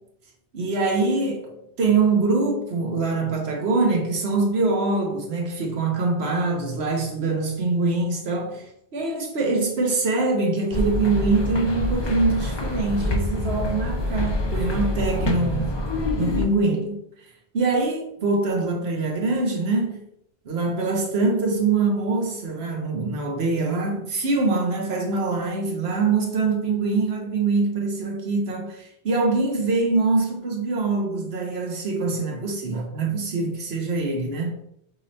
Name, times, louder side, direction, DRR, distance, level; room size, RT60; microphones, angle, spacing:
voice 1, 0.5-8.6 8.9-15.7 16.2-17.0 17.5-20.0 20.4-34.6, right 3 dB, 65° right, 1.2 m, -24 dB
sound 1, 10.7-16.4, left 2 dB, 40° left, 0.4 m, -26 dB
5.3 x 3.2 x 2.7 m
omnidirectional pair, 1.1 m